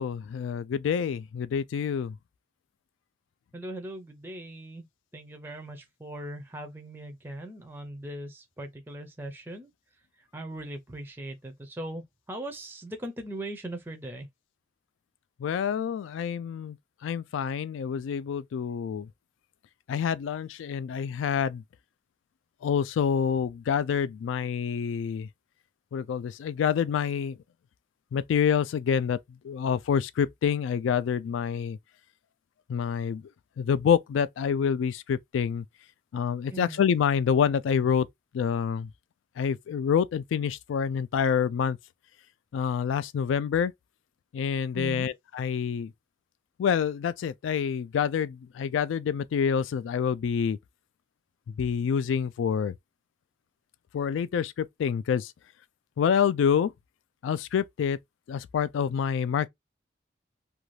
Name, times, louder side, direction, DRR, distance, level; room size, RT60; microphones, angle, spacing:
voice 1, 0.0-2.2 15.4-16.8 17.0-19.1 19.9-21.6 22.6-25.3 25.9-27.4 28.1-31.8 32.7-33.3 33.6-35.7 36.1-38.1 38.3-38.9 39.4-41.8 42.5-43.7 44.3-45.9 46.6-50.6 51.5-52.7 53.9-55.3 56.0-56.7 57.2-58.0 58.3-59.5, left 7 dB, 90° left, 0.3 m, -27 dB
voice 2, 3.5-4.9 5.1-9.7 10.3-14.3 36.5-36.9 44.7-45.1, right 1 dB, 10° right, 0.4 m, -39 dB
2.5 x 2.3 x 3.0 m
head